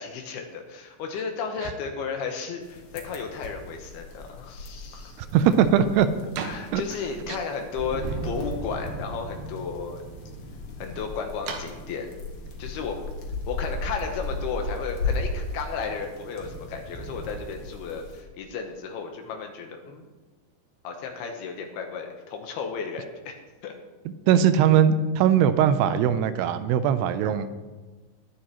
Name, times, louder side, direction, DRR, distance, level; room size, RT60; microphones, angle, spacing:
voice 1, 0.0-5.2 6.4-10.0 10.8-12.1 12.6-13.0 13.5-20.1 20.8-23.4 23.6-23.7, left 5 dB, 75° left, 3 dB, 2.9 m, -34 dB
sound 1, 2.6-18.2, left 3 dB, 50° left, 1.9 m, -37 dB
sound 2, 4.7-13.9, right 5 dB, 70° right, 2.9 m, -44 dB
voice 2, 5.2-6.1 6.7-6.8 7.3-7.4 24.3-27.5, right 9 dB, 85° right, 12 dB, 2.7 m, -20 dB
Thunder, 7.6-17.4, right 2 dB, 40° right, 5.1 m, -40 dB
21.5 x 10.0 x 3.0 m, 1.3 s
omnidirectional pair, 4.7 m